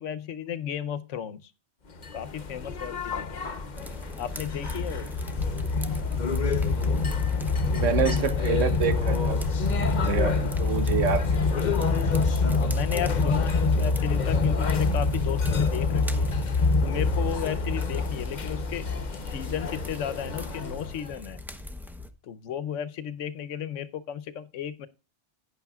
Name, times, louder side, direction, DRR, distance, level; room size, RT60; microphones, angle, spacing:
voice 1, 0.0-1.5 2.1-3.4 4.2-5.1 12.5-16.3 16.8-18.8 19.3-21.4 22.2-24.9, left 9 dB, 85° left, 1.1 m, -34 dB
sound 1, 2.0-21.1, left 4 dB, 40° left, 0.9 m, -26 dB
sound 2, 3.7-22.1, left 2 dB, ahead, 0.6 m, -41 dB
voice 2, 7.6-9.4 10.1-11.6 11.9-12.0, right 7 dB, 90° right, 1.4 m, -28 dB
11.5 x 9.9 x 2.4 m
omnidirectional pair, 1.2 m